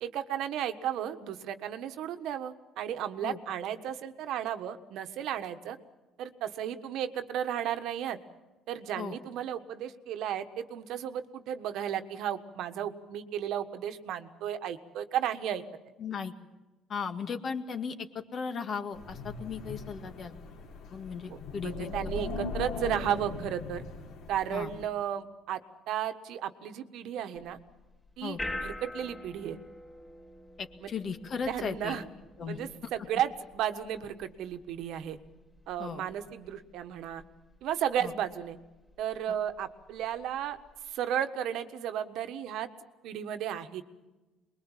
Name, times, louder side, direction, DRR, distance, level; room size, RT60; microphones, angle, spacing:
voice 1, 0.0-5.8 6.2-8.2 8.7-15.6 21.3-23.8 24.3-25.6 25.9-27.6 28.2-29.6 30.8-30.9 31.5-32.1 32.5-35.2 35.7-37.2 37.6-38.6 39.0-40.6 40.9-42.7 43.0-43.8, right 10 dB, 70° right, 8 dB, 1.5 m, -34 dB
voice 2, 16.0-16.3 16.9-20.3 20.9-21.9 24.5-24.7 28.2-28.4 30.6-32.0 32.4-32.9 35.8-36.0 38.0-38.1, left 6 dB, 40° left, 7 dB, 1.9 m, -36 dB
Wind, 18.9-24.8, left 3 dB, 70° left, 3.7 m, -39 dB
sound 1, 27.4-40.9, left 1 dB, 10° left, 3.4 m, -47 dB
24.0 x 22.0 x 7.4 m, 1.1 s
cardioid pair, 135°, 0 cm